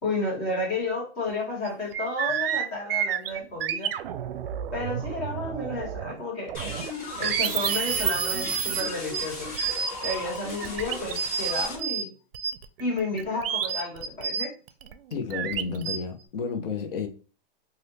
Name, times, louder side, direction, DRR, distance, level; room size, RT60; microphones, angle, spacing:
voice 1, 0.0-3.9 4.7-6.8 7.2-9.5 10.0-12.1 12.8-14.5, left 2 dB, 25° left, 1.4 m, -31 dB
sound 1, 1.3-1.4 1.7-6.2 6.5-12.0 12.3-16.0, right 8 dB, 75° right, 0.5 m, -30 dB
sound 2, 6.5-11.8, left 2 dB, 40° left, 1.6 m, -37 dB
voice 2, 15.1-17.1, left 5 dB, 70° left, 0.8 m, -31 dB
3.4 x 2.6 x 2.8 m
hypercardioid pair, 165°, 29 cm